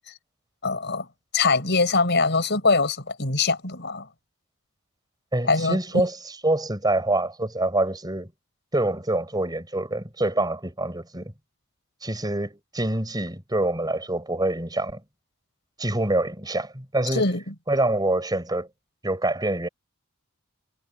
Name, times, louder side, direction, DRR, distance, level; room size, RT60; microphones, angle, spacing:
voice 1, 0.6-1.1 1.3-4.1 5.5-6.0 17.1-17.5, left 3 dB, 55° left, 5.5 m, -23 dB
voice 2, 5.3-6.1 6.4-8.3 8.7-11.3 12.0-15.0 15.8-17.2 17.7-18.7 19.0-19.7, right 1 dB, 20° right, 6.2 m, -25 dB
head